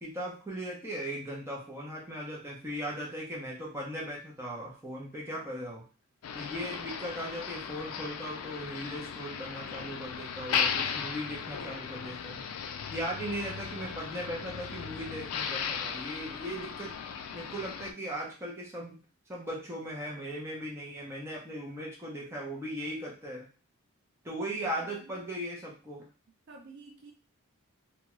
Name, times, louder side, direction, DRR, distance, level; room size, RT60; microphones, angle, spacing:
voice 1, 0.0-5.9 6.3-12.4 12.9-16.9 17.3-19.0 19.3-23.5 24.2-26.0, equal, 10° right, 0.7 m, -38 dB
Motor vehicle (road), 6.2-17.9, left 7 dB, 75° left, 0.3 m, -36 dB
voice 2, 24.8-25.2 26.5-27.1, right 3 dB, 50° right, 0.4 m, -50 dB
2.7 x 2.3 x 3.0 m
head